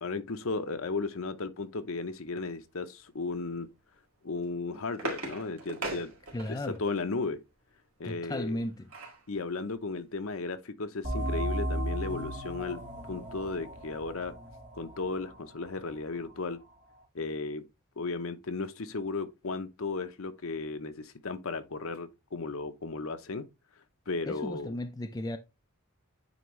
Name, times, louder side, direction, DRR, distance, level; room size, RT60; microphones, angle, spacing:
voice 1, 0.0-3.7 4.2-6.1 6.5-7.4 8.0-8.6 9.3-12.8 13.1-14.3 14.7-16.6 17.1-17.6 18.0-23.5 24.1-24.7, left 3 dB, 65° left, 0.8 m, -35 dB
sound 1, 4.3-6.8 8.4-9.3 9.7-9.8 10.1-10.3, right 2 dB, 65° right, 2.3 m, -39 dB
voice 2, 6.3-6.8 8.0-8.9 24.3-25.4, left 1 dB, 15° left, 0.4 m, -35 dB
sound 2, 11.0-16.3, right 1 dB, 30° right, 1.9 m, -36 dB
9.1 x 3.4 x 3.1 m
head